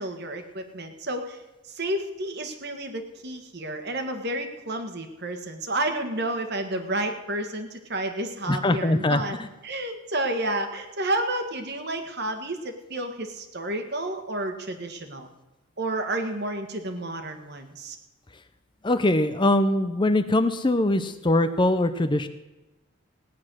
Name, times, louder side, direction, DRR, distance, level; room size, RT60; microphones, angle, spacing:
voice 1, 0.0-1.4 1.7-9.4 9.6-15.3 15.8-18.0, right 1 dB, 50° right, 6 dB, 1.6 m, -31 dB
voice 2, 8.5-9.5 18.8-22.3, left 1 dB, 20° left, 10 dB, 0.6 m, -22 dB
17.5 x 9.8 x 6.3 m, 1.0 s
head